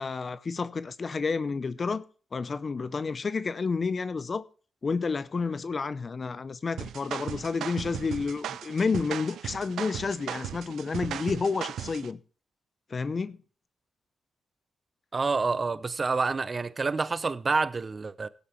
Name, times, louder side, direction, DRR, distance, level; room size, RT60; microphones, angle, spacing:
voice 1, 0.0-2.0 2.3-4.4 4.8-12.2 12.9-13.4, left 4 dB, 45° left, 0.6 m, -30 dB
sound 1, 6.8-12.1, right 10 dB, 75° right, 0.5 m, -37 dB
voice 2, 15.1-18.3, right 4 dB, 40° right, 0.8 m, -28 dB
16.5 x 8.5 x 3.1 m
supercardioid pair, 50°, 0 cm